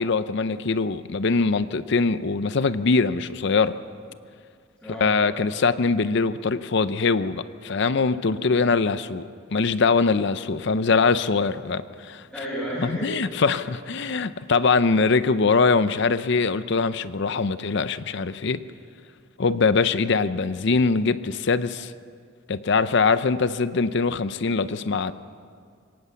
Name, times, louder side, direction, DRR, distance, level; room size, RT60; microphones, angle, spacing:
voice 1, 0.0-3.8 5.0-12.2 12.8-18.6 19.4-21.9 22.5-25.1, left 4 dB, 55° left, 13 dB, 0.6 m, -22 dB
voice 2, 4.8-5.2 12.3-13.4, equal, 5° left, -9 dB, 5.6 m, -32 dB
24.0 x 18.0 x 7.0 m, 2.1 s
head